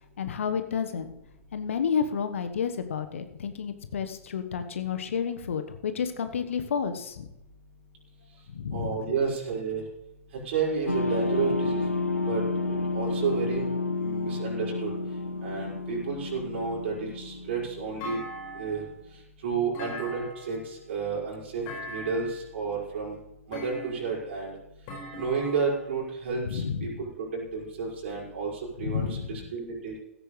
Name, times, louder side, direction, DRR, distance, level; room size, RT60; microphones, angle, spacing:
voice 1, 0.2-1.1 1.5-7.3 8.5-8.9 26.4-27.0 28.8-29.5, left 7 dB, 65° left, 9 dB, 1.3 m, -31 dB
voice 2, 8.7-9.8 10.5-11.9 12.3-12.4 12.9-13.7 14.0-14.9 15.4-18.2 18.5-18.8 19.4-23.2 23.5-24.5 25.2-28.5 28.8-30.0, right 5 dB, 50° right, -5 dB, 5.5 m, -31 dB
sound 1, 10.9-18.4, left 3 dB, 90° left, 1.4 m, -30 dB
Thump thud, 18.0-18.9 19.7-20.7 21.7-22.4 23.5-24.2 24.9-25.9, left 1 dB, 40° left, 5.2 m, -40 dB
16.0 x 14.0 x 3.3 m, 0.87 s
figure-of-eight pair, 105°, 8 cm